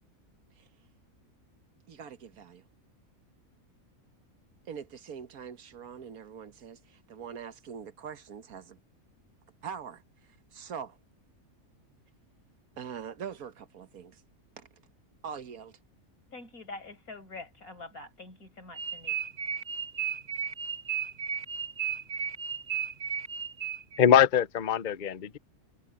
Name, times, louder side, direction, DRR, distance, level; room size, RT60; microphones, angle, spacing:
voice 1, 1.9-2.6 4.7-8.8 9.6-10.0 10.5-11.0 12.8-14.2 14.6-14.7 15.2-15.7, right 7 dB, 85° right, 1.7 m, -42 dB
voice 2, 16.3-19.2, left 3 dB, 85° left, 6.3 m, -45 dB
sound 1, 18.8-24.1, right 7 dB, 35° right, 0.8 m, -34 dB
voice 3, 24.0-25.4, left 9 dB, 45° left, 0.7 m, -23 dB
omnidirectional pair, 1.5 m